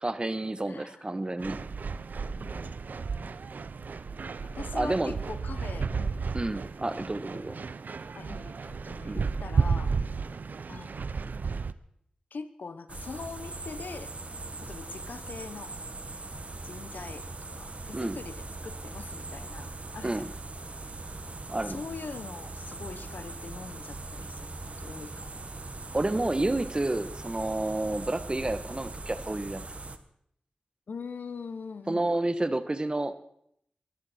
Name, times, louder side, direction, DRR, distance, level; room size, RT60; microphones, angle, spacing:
voice 1, 0.0-1.6 4.7-5.1 6.3-7.6 9.0-9.2 17.9-18.2 20.0-20.3 21.5-21.8 25.9-29.6 31.9-33.2, right 2 dB, 30° right, 11 dB, 1.4 m, -30 dB
voice 2, 0.7-1.1 2.2-2.7 4.5-6.2 8.1-9.9 10.7-11.2 12.3-14.1 14.6-15.7 16.6-20.3 21.6-25.3 30.9-32.1, left 4 dB, 85° left, 12 dB, 1.0 m, -42 dB
sound 1, 1.4-11.7, right 5 dB, 75° right, 0.6 m, -33 dB
sound 2, 12.9-30.0, right 2 dB, 50° right, 1.3 m, -41 dB
22.5 x 13.5 x 4.4 m, 0.72 s
wide cardioid pair, 55°, 3 cm